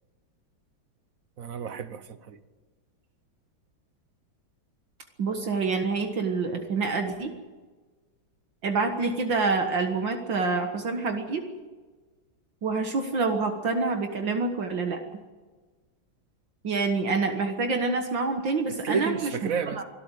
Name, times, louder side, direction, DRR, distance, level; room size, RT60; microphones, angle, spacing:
voice 1, 1.4-2.4 18.8-19.8, right 6 dB, 50° right, 1.3 m, -31 dB
voice 2, 5.2-7.3 8.6-11.4 12.6-15.0 16.6-19.5 19.8-19.9, right 4 dB, 65° right, 2.2 m, -27 dB
25.0 x 13.0 x 9.0 m
omnidirectional pair, 2.2 m